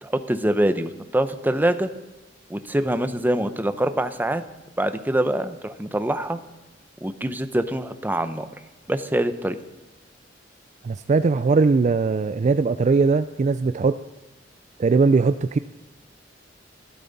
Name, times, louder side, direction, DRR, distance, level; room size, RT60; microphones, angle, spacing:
voice 1, 0.0-1.9 2.5-4.4 4.8-6.4 7.0-8.5 8.9-9.6, right 1 dB, 10° right, 9 dB, 0.7 m, -24 dB
voice 2, 10.8-14.0 14.8-15.6, right 4 dB, 40° right, 12 dB, 0.3 m, -20 dB
15.5 x 13.0 x 4.1 m, 1.1 s
head